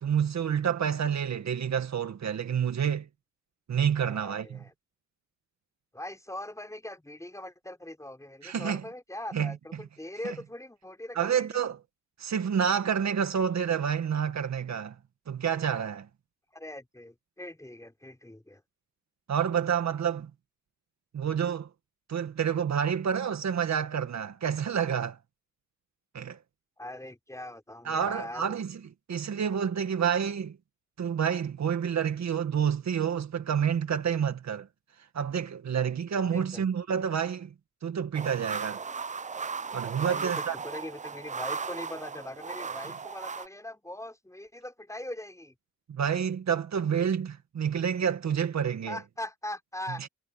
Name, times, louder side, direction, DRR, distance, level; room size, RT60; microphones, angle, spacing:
voice 1, 0.0-3.1 3.7-4.6 8.4-8.8 9.3-9.8 10.2-10.4 11.1-11.8 12.2-15.0 15.3-16.1 19.3-20.3 21.1-21.7 22.1-25.2 26.1-26.4 27.8-28.8 29.1-30.6 31.0-34.7 35.1-37.5 37.8-38.8 39.7-40.6 45.9-49.0, right 8 dB, 60° right, 2.0 m, -28 dB
voice 2, 4.0-4.7 5.9-11.6 16.5-18.6 26.8-28.6 36.2-36.6 40.0-45.5 48.9-50.1, left 1 dB, 10° left, 5.8 m, -41 dB
sound 1, 38.1-43.5, right 5 dB, 25° right, 0.6 m, -36 dB
cardioid pair, 80°, 31 cm